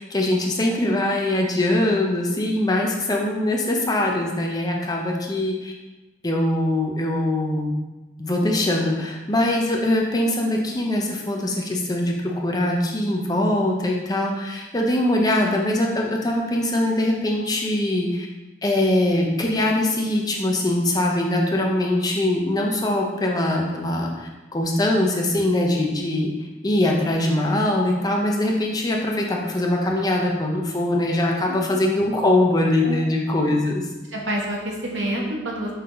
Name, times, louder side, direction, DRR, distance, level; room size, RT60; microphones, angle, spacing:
voice 1, 0.0-5.7 6.2-7.8 8.2-18.3 18.6-33.9, left 1 dB, 20° left, 0 dB, 0.7 m, -22 dB
voice 2, 34.1-35.7, right 1 dB, 70° right, -2 dB, 1.3 m, -27 dB
5.6 x 4.4 x 3.9 m, 1.1 s
head